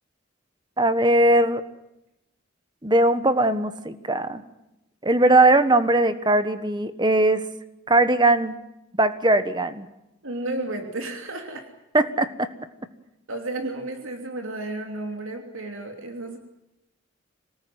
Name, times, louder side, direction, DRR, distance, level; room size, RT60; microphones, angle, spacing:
voice 1, 0.8-1.6 2.8-4.4 5.0-7.5 7.9-8.6 8.9-9.9 11.9-12.5, right 2 dB, 20° right, 11 dB, 1.3 m, -20 dB
voice 2, 10.2-11.6 13.3-16.4, right 2 dB, 80° right, 4 dB, 3.0 m, -32 dB
26.0 x 19.0 x 9.4 m, 0.89 s
head